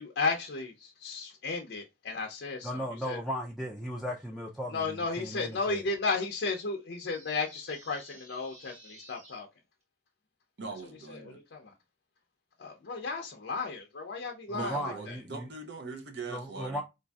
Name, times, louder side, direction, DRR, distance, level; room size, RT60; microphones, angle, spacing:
voice 1, 0.0-3.2 4.7-9.5 11.1-11.7 12.6-15.2, left 4 dB, 65° left, 0.5 m, -34 dB
voice 2, 2.6-5.8 14.5-15.5 16.3-16.8, equal, ahead, 0.3 m, -36 dB
sound 1, 7.0-9.4, right 1 dB, 35° right, 1.0 m, -54 dB
voice 3, 10.6-11.4 14.5-16.8, right 4 dB, 60° right, 0.6 m, -41 dB
3.9 x 2.5 x 2.2 m
head